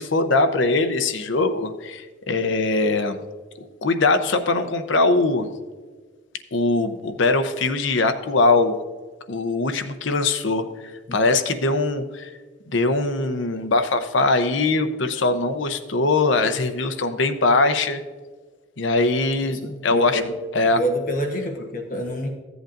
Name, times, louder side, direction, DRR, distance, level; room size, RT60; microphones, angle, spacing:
voice 1, 0.0-3.2 3.8-5.5 6.5-8.7 9.3-10.6 11.1-12.3 12.7-18.0 18.8-20.2 20.5-20.8, left 3 dB, 70° left, 9 dB, 0.7 m, -21 dB
voice 2, 19.6-20.3 20.6-22.3, equal, 45° left, 3 dB, 1.0 m, -27 dB
14.5 x 8.0 x 2.5 m, 1.4 s
head